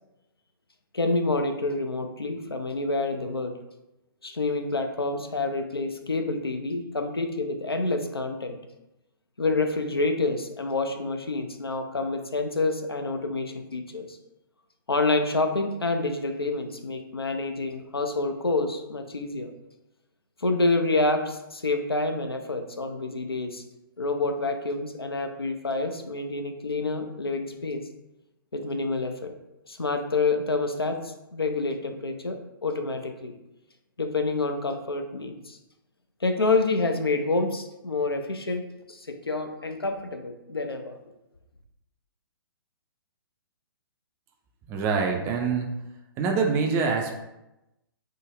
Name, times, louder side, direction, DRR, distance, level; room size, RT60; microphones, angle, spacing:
voice 1, 0.9-3.6 4.2-8.6 9.4-14.2 14.9-19.5 20.4-23.6 24.0-27.8 28.5-29.3 29.7-33.3 34.0-35.6 36.2-41.0, left 3 dB, 90° left, 6 dB, 0.4 m, -28 dB
voice 2, 44.7-45.7 46.2-47.2, right 5 dB, 20° right, 2 dB, 0.3 m, -25 dB
3.4 x 2.0 x 3.6 m, 0.94 s
figure-of-eight pair, 120°, 12 cm